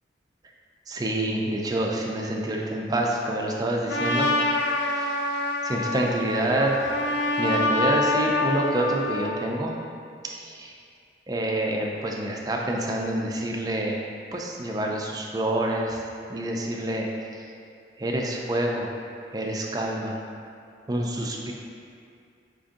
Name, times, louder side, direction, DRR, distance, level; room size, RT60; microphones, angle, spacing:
voice 1, 0.9-4.3 4.6-5.2 5.6-6.8 7.4-9.8 10.2-10.7 11.3-14.0 14.3-16.0 16.3-17.1 18.0-18.9 19.3-20.2 20.9-21.5, right 1 dB, 20° right, -1 dB, 0.4 m, -27 dB
Trumpet, 3.9-9.4, left 2 dB, 80° left, 0.4 m, -26 dB
5.1 x 2.6 x 3.6 m, 2.4 s
head